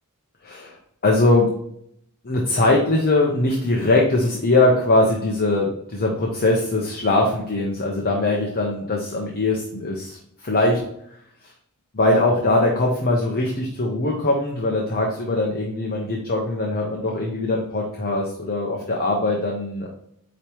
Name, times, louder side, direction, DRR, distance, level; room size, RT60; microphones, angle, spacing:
voice 1, 0.4-0.8 1.0-1.5 2.2-10.8 11.9-19.9, left 2 dB, 45° left, -1 dB, 0.9 m, -21 dB
9.1 x 3.1 x 3.5 m, 0.72 s
head